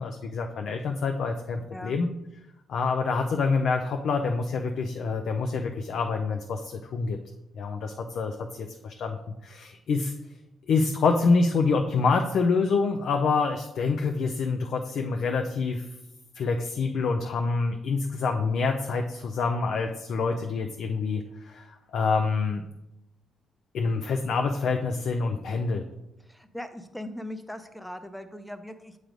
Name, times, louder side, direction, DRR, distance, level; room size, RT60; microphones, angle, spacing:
voice 1, 0.0-2.1 2.7-7.2 7.6-9.2 9.4-10.1 10.7-15.9 16.4-22.6 23.7-25.8, left 4 dB, 65° left, 4 dB, 0.5 m, -26 dB
voice 2, 26.2-29.0, left 1 dB, 5° left, 8 dB, 0.6 m, -39 dB
7.6 x 3.2 x 5.1 m, 0.90 s
cardioid pair, 90°, 0 cm